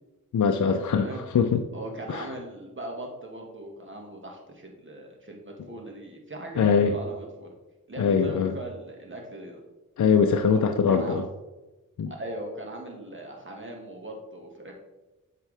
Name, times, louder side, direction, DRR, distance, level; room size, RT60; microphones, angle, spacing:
voice 1, 0.3-1.6 2.1-2.3 6.6-7.0 8.0-8.5 10.0-11.3 12.0-12.1, left 6 dB, 55° left, 5 dB, 0.6 m, -22 dB
voice 2, 0.9-1.2 1.7-7.5 7.9-9.6 10.4-11.2 12.2-14.7, right 1 dB, 35° right, 1 dB, 1.9 m, -39 dB
7.9 x 4.6 x 3.5 m, 1.1 s
cardioid pair, 45°, 35 cm